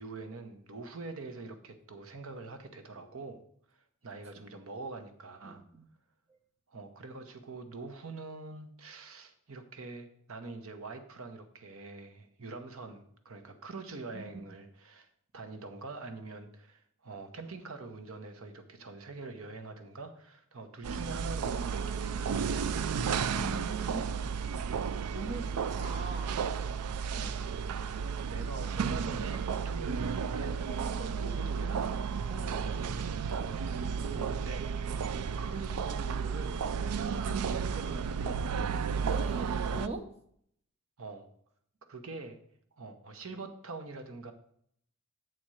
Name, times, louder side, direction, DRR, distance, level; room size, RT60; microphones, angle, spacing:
voice 1, 0.0-3.4 3.7-5.6 6.7-15.1 15.3-23.1 27.1-27.3 28.2-32.0 32.6-32.9 33.2-38.4 41.0-41.3 41.9-42.4 42.7-44.3, right 3 dB, 65° right, 8 dB, 0.9 m, -44 dB
voice 2, 5.4-5.9 6.3-6.4 14.1-14.5 23.3-24.1 25.1-26.4 32.3-32.6 39.0-40.1, right 2 dB, 30° right, 4 dB, 0.8 m, -42 dB
sound 1, 20.8-39.9, right 6 dB, 85° right, 0.4 m, -33 dB
7.8 x 4.3 x 6.3 m, 0.66 s
head